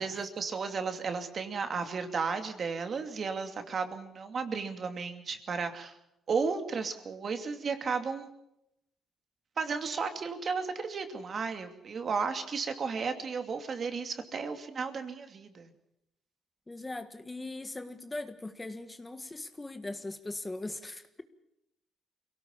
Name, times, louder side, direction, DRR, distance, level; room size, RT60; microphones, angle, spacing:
voice 1, 0.0-5.9 6.3-8.3 9.6-15.7, right 5 dB, 50° right, 7 dB, 2.6 m, -34 dB
voice 2, 16.7-21.2, left 2 dB, 20° left, 9 dB, 1.5 m, -40 dB
23.5 x 17.5 x 7.3 m, 0.82 s
cardioid pair, 90°, 0 cm